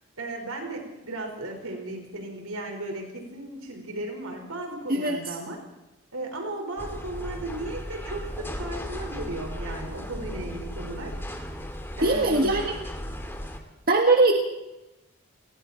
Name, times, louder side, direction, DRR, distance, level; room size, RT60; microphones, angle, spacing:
voice 1, 0.2-5.6 6.1-11.5 11.9-12.6, right 2 dB, 85° right, 3 dB, 5.4 m, -35 dB
sound 1, 6.8-13.6, equal, 10° left, 2.2 m, -36 dB
voice 2, 12.0-12.7 13.9-14.3, right 2 dB, 45° right, 2 dB, 1.7 m, -20 dB
29.0 x 19.5 x 4.6 m, 1.0 s
head